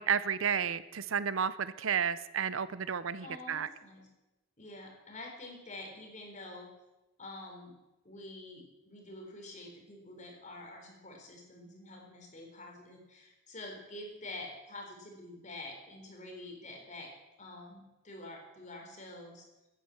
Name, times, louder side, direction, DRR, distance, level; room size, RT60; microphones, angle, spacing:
voice 1, 0.0-3.7, right 7 dB, 65° right, 15 dB, 0.6 m, -32 dB
voice 2, 3.2-4.1 4.6-6.7 7.2-7.7 8.0-17.1 17.4-19.5, left 2 dB, 35° left, 1 dB, 4.0 m, -47 dB
16.5 x 10.0 x 7.2 m, 1.0 s
head